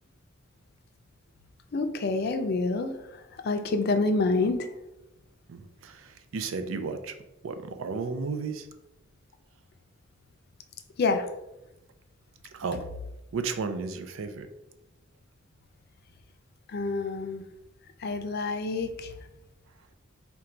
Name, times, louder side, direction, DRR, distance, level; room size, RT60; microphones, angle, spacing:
voice 1, 1.7-4.7 11.0-11.3 16.7-17.4 18.0-19.1, left 3 dB, 55° left, 7 dB, 0.4 m, -27 dB
voice 2, 5.5-7.2 7.4-8.7 12.5-12.9 13.3-14.5, right 4 dB, 90° right, 9 dB, 0.4 m, -33 dB
4.4 x 2.3 x 3.8 m, 0.92 s
head